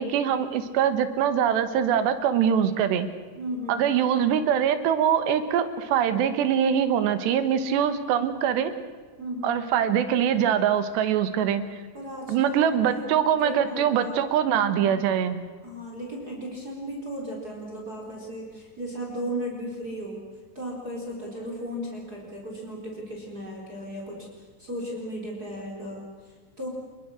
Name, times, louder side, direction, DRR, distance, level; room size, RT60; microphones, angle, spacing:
voice 1, 0.0-3.1 3.7-8.7 9.4-11.7 12.3-15.4, right 8 dB, 80° right, 11 dB, 3.5 m, -23 dB
voice 2, 3.3-3.8 9.2-9.6 11.9-13.1 13.4-14.2 15.6-20.2 20.5-26.7, equal, 20° right, -1 dB, 4.3 m, -36 dB
28.0 x 22.0 x 6.4 m, 1.5 s
omnidirectional pair, 4.9 m